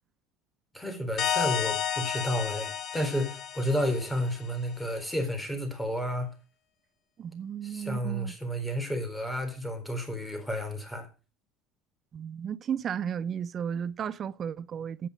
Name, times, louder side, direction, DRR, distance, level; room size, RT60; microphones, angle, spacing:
voice 1, 0.7-6.3 7.6-11.1, equal, 10° left, 4.0 m, -31 dB
sound 1, 1.2-4.6, left 9 dB, 50° left, 1.5 m, -32 dB
voice 2, 7.2-8.3 12.1-15.1, right 8 dB, 40° right, 0.7 m, -34 dB
10.5 x 9.5 x 5.3 m
supercardioid pair, 100°, 0 cm